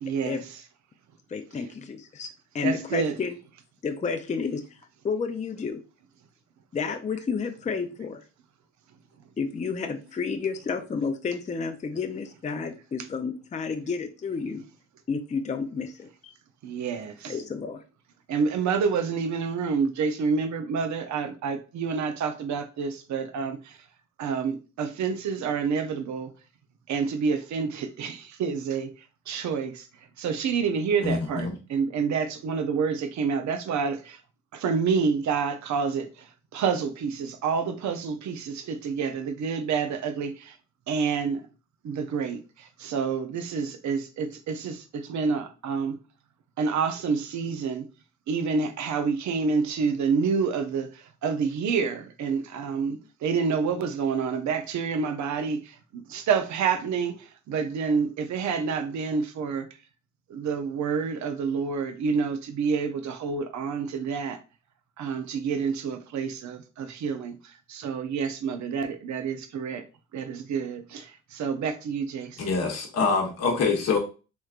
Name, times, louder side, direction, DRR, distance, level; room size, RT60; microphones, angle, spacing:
voice 1, 0.0-0.4 2.6-3.1 16.6-17.4 18.3-23.8 24.2-26.3 26.9-28.9 29.3-29.9 30.2-34.2 34.5-40.6 40.9-41.5 41.8-46.0 46.6-47.9 48.3-59.7 60.3-64.4 65.0-69.8 70.1-72.4, right 5 dB, 60° right, 0.6 m, -28 dB
voice 2, 1.3-3.4 3.8-4.8 5.0-5.8 6.7-8.2 9.4-14.6 15.1-16.3 17.3-17.8, left 5 dB, 20° left, 0.5 m, -31 dB
voice 3, 72.4-74.0, left 4 dB, 50° left, 1.0 m, -25 dB
3.2 x 3.1 x 2.4 m
supercardioid pair, 55°, 33 cm